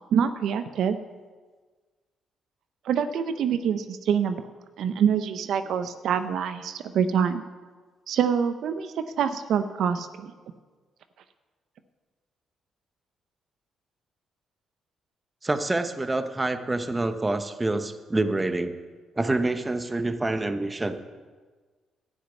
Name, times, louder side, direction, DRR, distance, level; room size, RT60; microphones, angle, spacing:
voice 1, 0.1-1.0 2.8-4.4 4.8-7.4 8.1-10.3, right 7 dB, 75° right, 10 dB, 0.6 m, -25 dB
voice 2, 15.4-18.7 19.2-20.9, right 2 dB, 20° right, 9 dB, 0.9 m, -27 dB
11.5 x 6.4 x 9.1 m, 1.4 s
cardioid pair, 90°, 0 cm